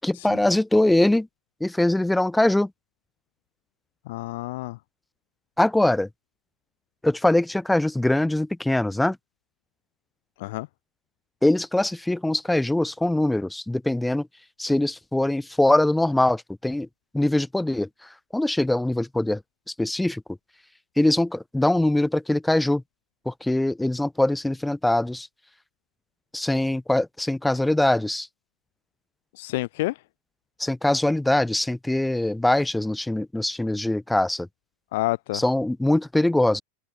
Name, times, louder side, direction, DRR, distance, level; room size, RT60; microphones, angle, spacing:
voice 1, 0.0-1.3 1.6-2.7 5.6-6.1 7.0-9.2 11.4-14.3 14.6-16.9 17.1-17.9 18.3-19.4 19.8-20.2 21.0-22.8 23.3-25.3 26.3-28.3 30.6-34.5 35.3-36.6, left 1 dB, 5° left, 6.8 m, -22 dB
voice 2, 4.1-4.8 10.4-10.7 29.4-30.0 34.9-35.4, left 19 dB, 65° left, 4.2 m, -29 dB
supercardioid pair, 155°, 0 cm